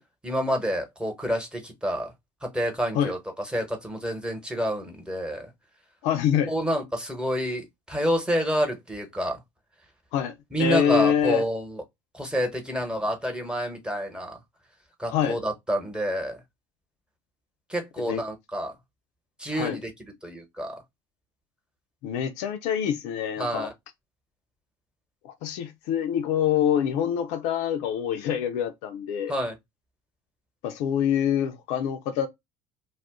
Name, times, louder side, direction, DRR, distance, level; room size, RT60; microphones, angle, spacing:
voice 1, 0.2-2.1 2.4-5.5 6.5-9.4 10.5-11.8 12.1-14.4 15.0-16.4 17.7-18.7 19.4-19.9 20.2-20.8 23.4-23.7 29.3-29.5, equal, 5° right, 1.0 m, -28 dB
voice 2, 6.0-6.5 10.1-11.4 15.1-15.4 18.1-18.2 19.5-19.8 22.0-23.7 25.2-29.3 30.6-32.3, left 9 dB, 65° left, 0.5 m, -25 dB
2.4 x 2.1 x 3.5 m
hypercardioid pair, 70°, 13 cm